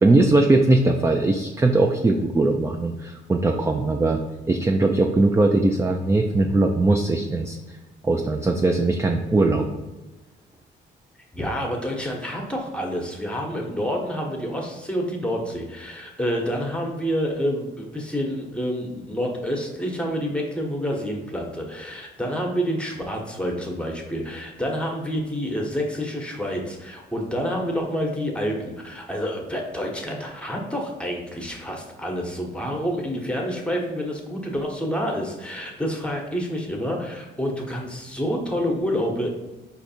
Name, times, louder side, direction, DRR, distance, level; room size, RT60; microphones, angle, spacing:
voice 1, 0.0-4.2 4.5-7.6 8.0-9.7, right 2 dB, 15° right, 3 dB, 0.4 m, -20 dB
voice 2, 11.3-39.3, equal, 5° left, 1 dB, 1.0 m, -28 dB
4.6 x 2.7 x 4.2 m, 1.1 s
cardioid pair, 90°, 20 cm